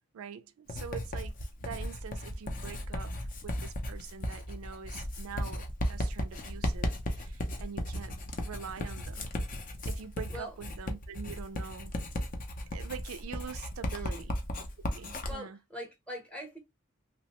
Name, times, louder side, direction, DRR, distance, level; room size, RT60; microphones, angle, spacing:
voice 1, 0.1-1.3 1.6-3.1 3.4-9.3 9.9-11.9 12.7-14.4 14.9-15.6, right 7 dB, 90° right, 0.4 m, -44 dB
Writing, 0.7-15.3, left 1 dB, 40° left, 0.5 m, -36 dB
voice 2, 13.8-14.3 15.0-16.6, equal, 5° left, 0.8 m, -43 dB
3.0 x 2.1 x 2.8 m
head